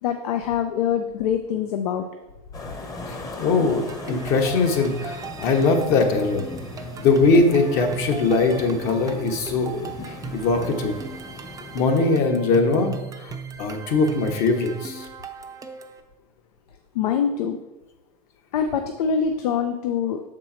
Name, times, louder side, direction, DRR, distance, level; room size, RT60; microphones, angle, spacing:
voice 1, 0.0-2.1 16.9-17.6 18.5-20.2, left 7 dB, 85° left, 6 dB, 0.5 m, -24 dB
sound 1, 2.5-12.1, left 2 dB, 20° left, 0.8 m, -38 dB
voice 2, 3.1-6.4 7.0-10.9 11.7-15.1, left 3 dB, 55° left, 3 dB, 1.1 m, -21 dB
sound 2, 3.7-16.0, right 5 dB, 20° right, 0.5 m, -38 dB
6.5 x 4.4 x 4.3 m, 1.0 s
supercardioid pair, 115°, 19 cm